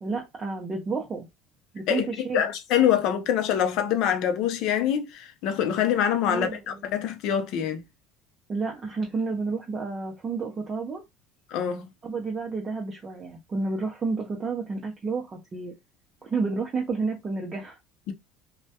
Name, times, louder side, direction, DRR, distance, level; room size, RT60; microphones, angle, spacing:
voice 1, 0.0-1.3 1.7-2.4 6.3-6.8 8.5-11.0 12.0-15.8 16.2-17.8, right 4 dB, 30° right, 0.5 m, -30 dB
voice 2, 2.3-7.8 11.5-11.9, left 9 dB, 65° left, 0.5 m, -25 dB
2.2 x 2.1 x 2.7 m
supercardioid pair, 110°, 0 cm